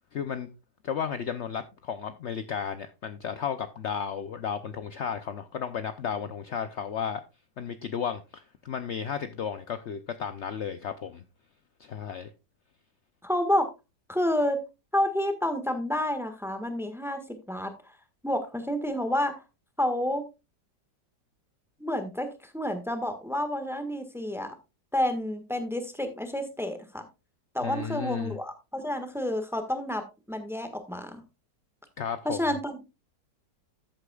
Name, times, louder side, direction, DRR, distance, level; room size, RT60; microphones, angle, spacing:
voice 1, 0.1-0.5 0.8-7.2 7.6-11.2 11.8-12.3 27.6-28.4 32.0-32.4, left 7 dB, 70° left, 0.6 m, -33 dB
voice 2, 13.2-13.7 14.1-14.6 14.9-17.9 18.2-19.3 19.8-20.2 21.8-22.3 22.5-24.5 24.9-27.1 27.5-31.2 32.2-32.8, left 1 dB, ahead, 1.2 m, -29 dB
13.5 x 8.2 x 2.3 m
omnidirectional pair, 1.9 m